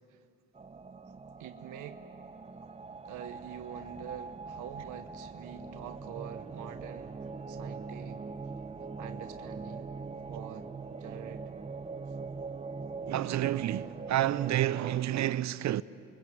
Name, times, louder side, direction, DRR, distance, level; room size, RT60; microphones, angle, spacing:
sound 1, 0.5-15.0, right 4 dB, 20° right, 0.8 m, -42 dB
voice 1, 1.4-2.0 3.0-7.2 7.5-8.2 9.0-9.9 10.3-11.4, right 10 dB, 85° right, 1.1 m, -45 dB
voice 2, 13.1-15.8, right 13 dB, 65° right, 0.6 m, -29 dB
28.5 x 23.0 x 7.6 m
cardioid pair, 90°, 30 cm